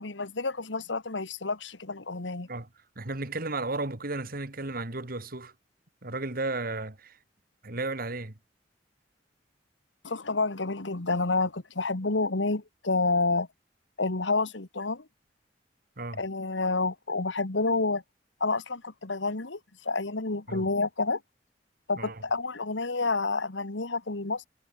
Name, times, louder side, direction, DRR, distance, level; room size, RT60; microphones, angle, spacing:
voice 1, 0.0-2.5 10.0-13.5 14.0-15.0 16.2-18.0 18.4-21.2 21.9-24.5, left 3 dB, 80° left, 1.8 m, -29 dB
voice 2, 3.0-5.5 6.0-7.2 7.6-8.3 16.0-16.2 20.5-20.7 22.0-22.2, right 2 dB, 50° right, 2.2 m, -34 dB
head